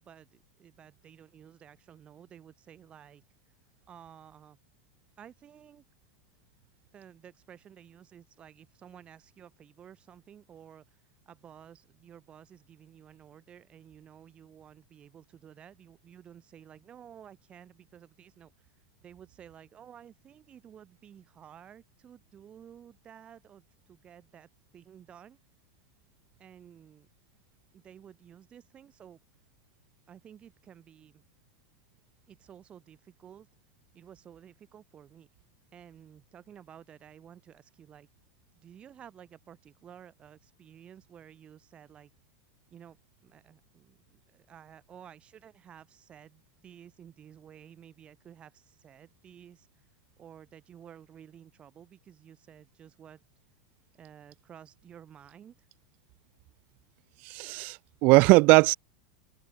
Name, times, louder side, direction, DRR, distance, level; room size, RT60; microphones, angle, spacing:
voice 1, 0.0-3.2 3.9-4.6 5.2-5.8 6.9-25.4 26.4-27.1 27.7-29.2 30.1-31.2 32.3-33.5 33.9-35.3 35.7-38.1 38.6-42.1 42.7-43.0 43.2-49.9 50.2-53.2 54.0-55.7, right 9 dB, 30° right, 1.8 m, -53 dB
voice 2, 57.2-58.7, right 26 dB, 45° right, 0.3 m, -20 dB
open air
figure-of-eight pair, 90°, 4 cm